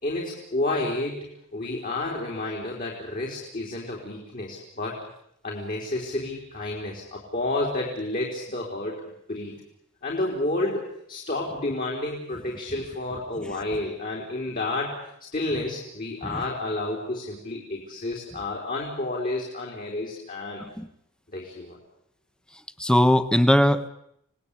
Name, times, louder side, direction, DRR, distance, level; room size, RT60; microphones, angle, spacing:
voice 1, 0.0-5.0 5.4-9.0 9.3-9.5 10.0-15.0 15.3-20.6 21.3-21.8, left 2 dB, 40° left, -1 dB, 4.2 m, -30 dB
voice 2, 22.8-23.9, left 1 dB, 5° left, 11 dB, 1.2 m, -20 dB
29.0 x 19.0 x 8.5 m, 0.75 s
head